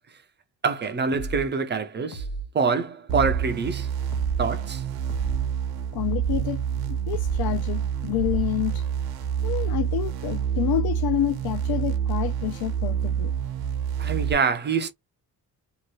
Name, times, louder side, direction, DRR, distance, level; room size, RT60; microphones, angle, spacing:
voice 1, 0.6-2.3 2.5-3.9 4.4-4.8 14.0-14.9, right 5 dB, 30° right, 0.4 m, -25 dB
sound 1, 1.1-1.5 2.1-2.5 3.1-3.5 4.1-4.5 5.1-5.5 6.1-6.5 7.1-7.5 8.1-8.5, right 3 dB, 90° left, 0.9 m, -33 dB
sound 2, 3.1-14.3, right 8 dB, 70° right, 0.7 m, -27 dB
voice 2, 5.9-6.6 6.9-8.8 9.4-13.3, left 13 dB, 70° left, 0.6 m, -28 dB
2.8 x 2.3 x 2.9 m
cardioid pair, 165°, 38 cm